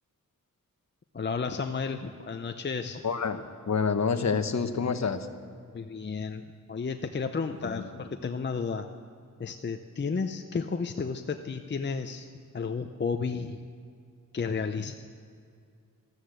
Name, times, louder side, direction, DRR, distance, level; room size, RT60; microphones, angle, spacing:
voice 1, 1.1-3.0 5.7-8.9 9.4-12.3 12.5-13.6 14.3-14.9, left 5 dB, 35° left, 6 dB, 0.6 m, -32 dB
voice 2, 3.0-5.3 7.6-7.7, left 5 dB, 55° left, 9 dB, 1.0 m, -28 dB
13.5 x 13.0 x 7.8 m, 2.2 s
wide cardioid pair, 115°, 33 cm